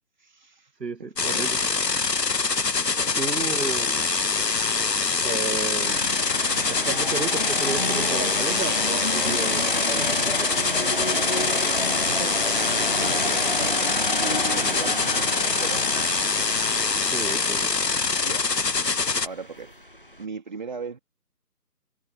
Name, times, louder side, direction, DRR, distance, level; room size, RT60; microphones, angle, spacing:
voice 1, 0.2-0.7 1.2-1.4 2.9-3.2 11.8-13.8 14.2-16.1 18.2-18.5 19.2-19.7 20.2-21.0, right 5 dB, 30° right, 2.8 m, -38 dB
voice 2, 0.8-1.6 3.2-4.1 5.2-6.1 6.7-10.5 14.6-14.8 17.0-17.7, right 3 dB, 85° right, 1.7 m, -33 dB
sound 1, 1.2-19.3, left 4 dB, 80° left, 1.4 m, -24 dB
sound 2, 1.2-19.9, right 18 dB, 10° right, 5.4 m, -66 dB
sound 3, 5.8-20.2, equal, 35° left, 0.7 m, -31 dB
figure-of-eight pair, 165°, 48 cm